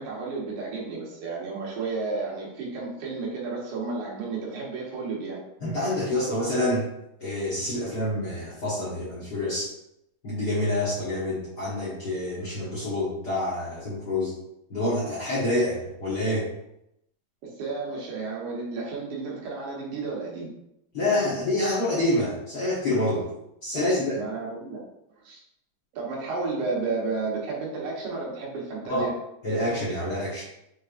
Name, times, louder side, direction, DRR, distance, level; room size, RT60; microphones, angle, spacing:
voice 1, 0.0-5.4 17.4-20.5 23.7-23.8 24.1-24.8 25.2-25.4 25.9-29.1, right 3 dB, 90° right, -3 dB, 2.7 m, -32 dB
voice 2, 5.6-6.9 7.2-9.7 10.2-14.3 14.7-16.5 20.9-23.3 23.6-24.2 28.9-29.1 29.4-30.4, left 1 dB, 50° left, -8 dB, 1.2 m, -27 dB
6.2 x 3.4 x 2.5 m, 0.82 s
omnidirectional pair, 3.4 m